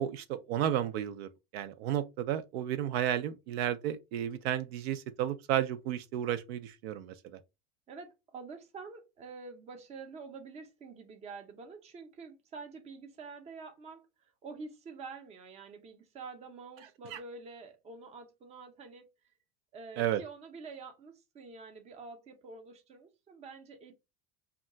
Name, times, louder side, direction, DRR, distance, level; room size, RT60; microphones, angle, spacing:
voice 1, 0.0-7.1 17.1-17.2 20.0-20.2, right 11 dB, 80° right, 0.5 m, -32 dB
voice 2, 7.9-19.1 19.7-23.9, right 4 dB, 20° right, 0.5 m, -47 dB
2.3 x 2.2 x 3.7 m
supercardioid pair, 145°, 31 cm